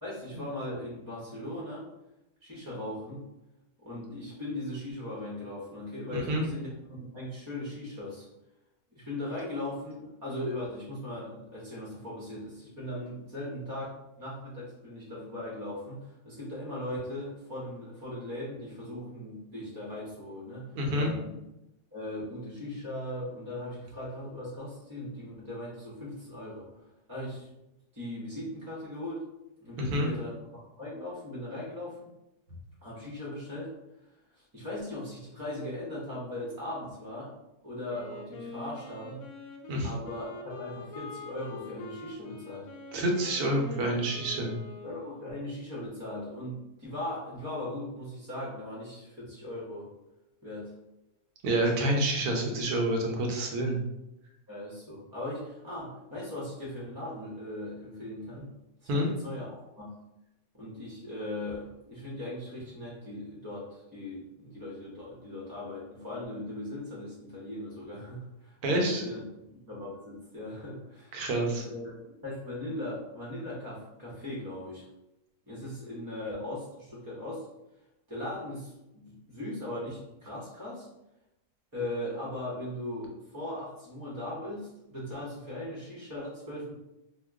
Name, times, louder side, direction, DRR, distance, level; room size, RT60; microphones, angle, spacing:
voice 1, 0.0-1.9 2.4-3.2 3.8-8.3 8.9-21.4 21.9-26.7 27.1-27.5 27.9-29.3 29.6-32.1 32.8-33.7 34.4-37.3 37.6-39.2 39.8-42.7 44.8-49.9 50.4-50.7 54.5-58.5 58.8-59.9 60.5-71.8 72.2-74.8 75.5-77.5 78.1-80.9 81.7-86.7, left 1 dB, 20° right, -6 dB, 0.6 m, -39 dB
voice 2, 6.1-6.4 20.7-21.1 29.8-30.1 39.7-39.9 42.9-44.6 51.4-53.8 58.9-59.1 68.6-69.0 71.1-71.6, right 1 dB, 85° right, 1 dB, 1.2 m, -28 dB
Wind instrument woodwind instrument, 37.8-45.5, left 2 dB, 80° left, 1.1 m, -44 dB
2.9 x 2.2 x 3.4 m, 0.90 s
omnidirectional pair, 1.5 m